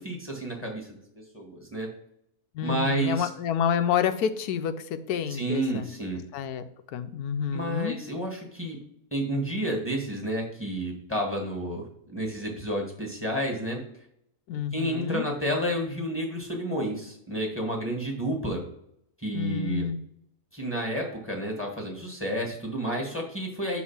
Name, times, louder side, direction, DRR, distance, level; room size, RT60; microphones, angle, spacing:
voice 1, 0.0-1.9 2.6-3.3 5.3-6.2 7.5-8.8 9.1-13.8 14.7-18.6 19.2-19.8 20.5-23.8, right 1 dB, 10° left, 0 dB, 1.4 m, -30 dB
voice 2, 2.5-5.9 6.3-6.6 6.9-8.0 14.5-15.2 19.3-20.0, left 7 dB, 90° left, 10 dB, 1.1 m, -28 dB
6.2 x 3.9 x 5.8 m, 0.74 s
omnidirectional pair, 1.6 m